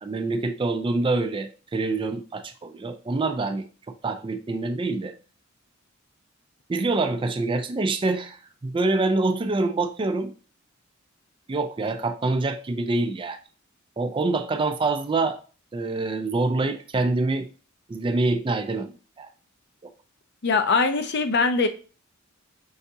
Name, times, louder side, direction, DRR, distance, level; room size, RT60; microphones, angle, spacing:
voice 1, 0.0-3.7 4.0-5.1 6.7-10.3 11.5-13.4 14.0-15.4 15.7-17.5 17.9-19.3, right 3 dB, 25° right, 8 dB, 0.4 m, -26 dB
voice 2, 20.4-21.7, left 4 dB, 55° left, 8 dB, 0.6 m, -22 dB
5.5 x 3.5 x 2.7 m, 0.36 s
head